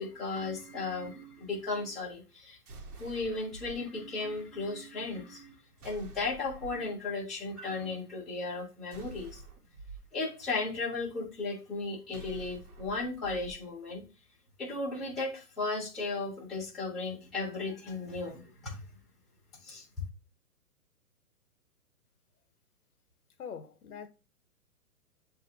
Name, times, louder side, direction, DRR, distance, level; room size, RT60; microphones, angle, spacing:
voice 1, 0.0-2.6 3.0-5.5 5.8-9.4 10.1-14.0 14.6-18.8 19.6-19.9, left 3 dB, ahead, 0.5 m, -35 dB
sound 1, 2.7-3.8 5.8-6.8 8.9-10.0 12.1-13.6, right 4 dB, 75° right, 1.1 m, -48 dB
voice 2, 23.4-24.1, left 7 dB, 70° left, 0.8 m, -43 dB
7.3 x 2.5 x 2.7 m
hypercardioid pair, 130°, 46 cm